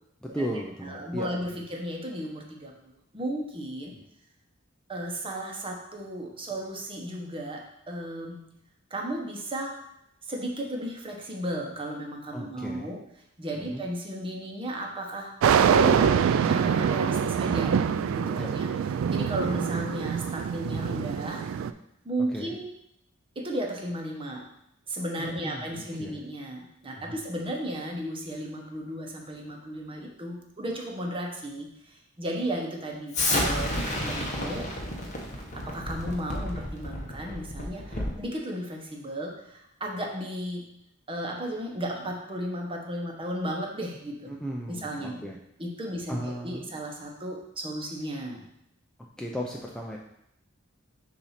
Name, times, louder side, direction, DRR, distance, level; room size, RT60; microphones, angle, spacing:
voice 1, 0.2-1.7 3.9-4.0 12.3-12.9 13.5-13.8 18.4-18.5 22.3-22.5 25.2-26.2 26.9-27.2 37.9-38.1 44.3-45.4 46.1-46.8 49.2-50.0, equal, 5° left, -2 dB, 0.4 m, -36 dB
voice 2, 0.8-3.9 4.9-8.4 8.9-9.8 10.3-13.0 13.4-17.7 18.1-18.7 19.1-21.4 22.0-22.7 23.3-24.4 24.9-34.7 35.5-40.7 41.1-44.3 44.7-45.2 45.6-48.5, right 1 dB, 25° right, 0 dB, 1.0 m, -34 dB
sound 1, 15.4-21.7, right 7 dB, 70° right, 0.3 m, -24 dB
Explosion, 33.1-38.2, left 1 dB, 35° left, 1.1 m, -30 dB
7.0 x 2.8 x 5.7 m, 0.78 s
head